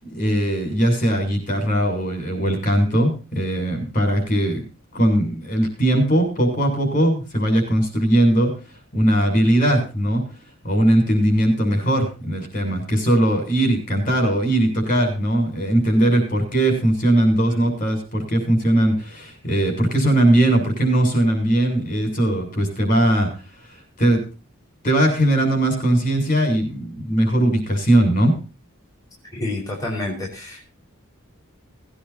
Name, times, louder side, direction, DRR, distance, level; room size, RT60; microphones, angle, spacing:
voice 1, 0.0-4.6 4.9-8.5 8.9-10.2 10.6-23.3 24.0-24.2 24.8-28.4, right 1 dB, 40° left, 4 dB, 7.0 m, -19 dB
voice 2, 29.3-30.7, left 2 dB, 15° left, -3 dB, 5.2 m, -29 dB
19.5 x 10.0 x 4.4 m, 0.34 s
head